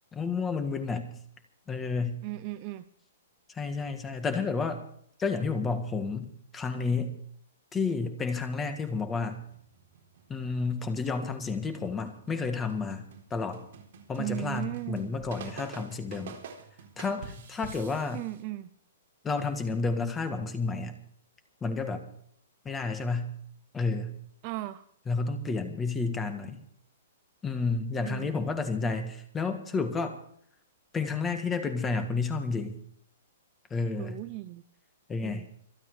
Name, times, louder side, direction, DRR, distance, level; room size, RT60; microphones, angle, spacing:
voice 1, 0.1-1.1 1.7-2.2 3.5-4.8 5.2-7.1 7.7-9.4 10.3-13.6 14.1-16.4 17.0-18.2 19.2-21.0 21.6-22.0 22.7-23.3 23.7-24.1 25.1-26.6 27.4-30.2 30.9-32.8 33.7-34.2 35.1-35.5, left 4 dB, 10° left, 7 dB, 1.7 m, -31 dB
voice 2, 2.2-2.8 14.2-15.1 18.1-18.7 24.4-24.8 28.0-28.5 34.0-34.6 35.2-35.4, right 17 dB, 25° right, 12 dB, 0.5 m, -36 dB
sound 1, 9.1-18.4, right 6 dB, 45° right, 4.0 m, -49 dB
26.5 x 8.8 x 4.9 m, 0.63 s
hypercardioid pair, 175°, 0 cm